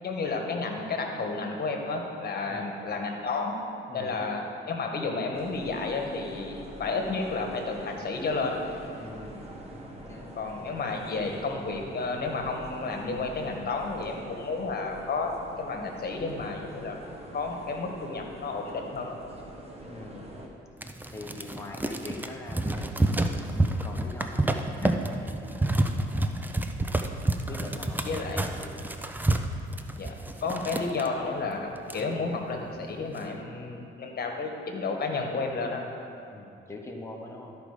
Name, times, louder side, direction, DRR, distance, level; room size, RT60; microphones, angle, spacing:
voice 1, 0.0-3.6 3.9-8.6 10.4-15.3 15.6-16.9 17.3-19.2 28.0-28.4 30.0-30.1 30.4-35.9, left 3 dB, 50° left, 2 dB, 1.4 m, -31 dB
voice 2, 3.9-4.2 9.0-10.4 19.9-20.5 21.1-26.2 27.5-29.0 36.3-37.6, left 2 dB, 15° left, 0 dB, 1.2 m, -44 dB
sound 1, 5.3-20.5, right 1 dB, 30° right, 1.5 m, -44 dB
sound 2, 20.8-31.1 31.5-31.6 31.8-32.5 32.9-33.3, right 1 dB, 10° right, 0.5 m, -29 dB
12.5 x 5.1 x 4.9 m, 2.5 s
cardioid pair, 90°, 20 cm